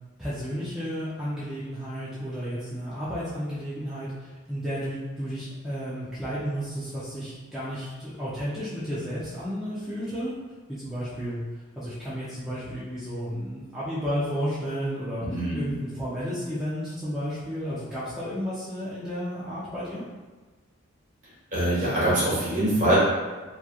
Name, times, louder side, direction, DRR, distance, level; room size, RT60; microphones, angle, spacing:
voice 1, 0.2-10.3 10.7-11.4 11.8-15.3 15.5-20.0, equal, ahead, -12 dB, 0.5 m, -32 dB
voice 2, 15.2-15.6 21.5-23.0, right 1 dB, 40° right, -9 dB, 1.1 m, -23 dB
2.9 x 2.3 x 2.3 m, 1.3 s
head